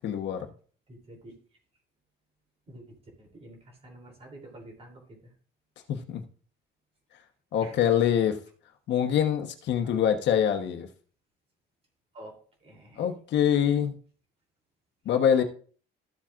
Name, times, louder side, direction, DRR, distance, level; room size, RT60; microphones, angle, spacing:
voice 1, 0.0-0.5 5.9-6.2 7.5-8.4 8.9-10.9 13.0-13.9 15.0-15.4, left 9 dB, 65° left, 6 dB, 1.1 m, -24 dB
voice 2, 0.9-1.3 2.7-2.8 3.2-5.0 7.6-7.7 9.8-9.9 12.1-12.3 12.6-13.0, right 1 dB, 30° right, 1 dB, 3.1 m, -48 dB
13.5 x 7.3 x 2.5 m, 0.42 s
cardioid pair, 170°, 20 cm